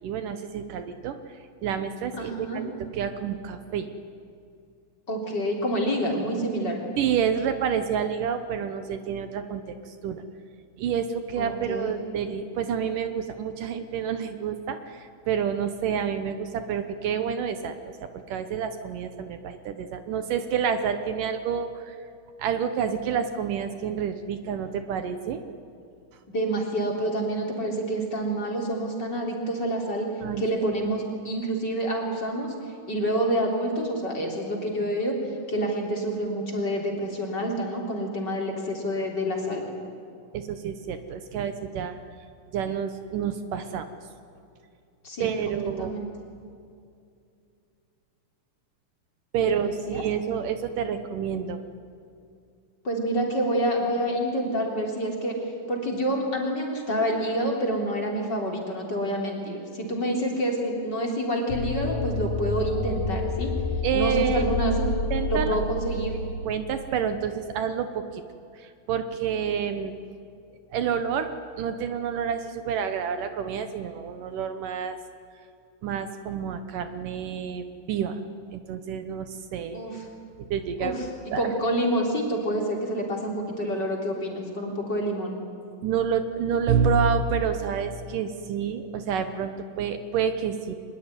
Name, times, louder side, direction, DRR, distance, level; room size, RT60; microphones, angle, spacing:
voice 1, 0.0-3.9 7.0-10.2 10.8-22.0 22.4-25.4 30.2-30.4 40.3-42.0 42.5-43.9 45.2-46.0 49.3-51.6 63.8-64.5 64.8-65.6 66.5-68.2 68.5-69.9 70.7-71.3 71.6-75.0 75.8-78.2 78.5-80.0 80.5-81.0 81.3-81.5 85.8-90.7, right 7 dB, 70° right, 9 dB, 2.5 m, -29 dB
voice 2, 2.2-2.6 5.1-6.8 11.4-12.0 26.3-30.1 30.4-32.5 32.9-35.2 35.5-39.7 45.0-46.1 49.5-50.0 52.8-55.4 55.7-63.5 63.9-64.7 65.3-66.2 79.7-80.0 80.8-81.1 81.3-85.4, right 1 dB, 30° left, 0 dB, 3.8 m, -28 dB
sound 1, 61.5-66.5, left 3 dB, 55° left, 2.1 m, -29 dB
24.0 x 21.0 x 9.8 m, 2.4 s
omnidirectional pair, 4.1 m